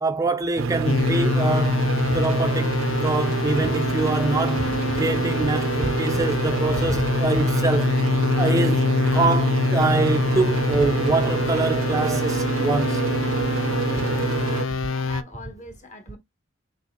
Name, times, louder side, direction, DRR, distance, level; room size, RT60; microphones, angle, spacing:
voice 1, 0.0-1.8 2.1-2.8 3.0-7.9 8.4-13.0, right 3 dB, 15° right, 0.3 m, -25 dB
sound 1, 0.6-14.7, right 4 dB, 80° right, 0.5 m, -26 dB
sound 2, 0.8-15.2, left 4 dB, 70° left, 0.4 m, -25 dB
voice 2, 13.7-16.2, left 1 dB, 40° left, 1.2 m, -42 dB
6.0 x 2.5 x 2.9 m
head